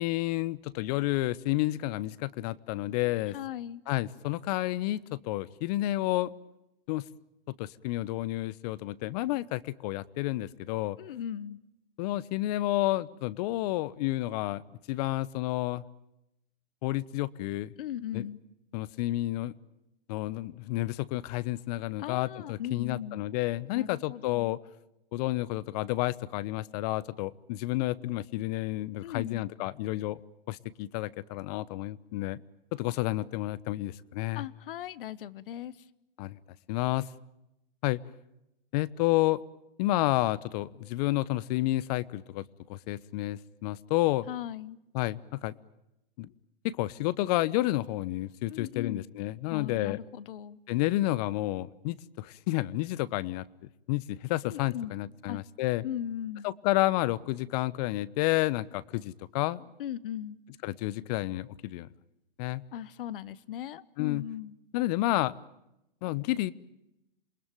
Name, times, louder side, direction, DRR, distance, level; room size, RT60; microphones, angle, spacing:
voice 1, 0.0-3.3 3.9-6.3 6.9-7.0 7.5-11.0 12.0-14.6 14.9-15.8 16.8-17.7 18.1-18.2 18.7-19.5 20.1-24.6 25.1-30.2 30.5-32.4 32.7-34.4 36.2-36.4 36.7-37.1 37.8-38.0 38.7-39.4 39.8-42.4 42.7-44.3 44.9-45.5 46.2-46.3 46.6-50.0 50.7-53.4 53.9-55.8 56.4-59.6 60.6-61.9 62.4-62.6 64.0-64.2 64.7-65.3 66.0-66.5, left 17 dB, 40° left, 19 dB, 0.9 m, -30 dB
voice 2, 3.3-3.8 11.0-11.6 17.8-18.4 22.0-23.3 23.7-24.5 29.0-29.4 34.3-35.7 44.3-44.8 48.5-49.1 49.5-50.6 54.4-54.9 55.3-55.4 55.8-56.5 59.8-60.4 62.7-64.6, left 10 dB, 65° left, 19 dB, 1.1 m, -38 dB
27.5 x 20.5 x 9.1 m, 0.88 s
hypercardioid pair, 125°, 29 cm